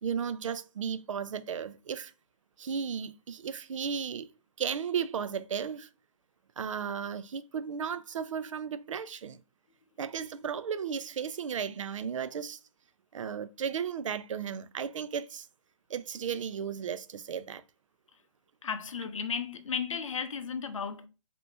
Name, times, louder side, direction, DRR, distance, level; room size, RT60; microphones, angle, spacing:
voice 1, 0.0-2.1 2.6-4.3 4.6-5.9 6.6-9.4 10.0-12.6 13.1-15.5 15.9-17.6, right 7 dB, 70° right, 0.4 m, -35 dB
voice 2, 18.6-21.1, left 6 dB, 70° left, 0.5 m, -34 dB
3.3 x 2.9 x 2.5 m
hypercardioid pair, 180°, 17 cm